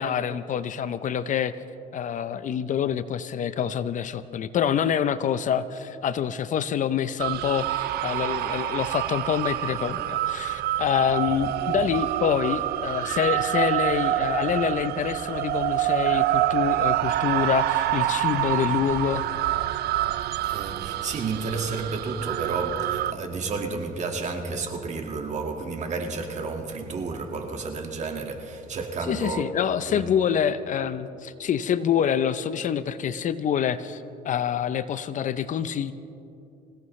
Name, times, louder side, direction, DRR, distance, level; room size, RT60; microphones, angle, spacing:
voice 1, 0.0-1.5 1.9-19.2 29.1-35.9, left 8 dB, 50° left, 0.6 m, -26 dB
sound 1, 7.2-23.1, right 14 dB, 70° right, 0.5 m, -27 dB
voice 2, 20.3-29.5 29.8-30.2, right 4 dB, 45° right, 1.9 m, -31 dB
26.0 x 17.0 x 3.2 m
cardioid pair, 110°, 17 cm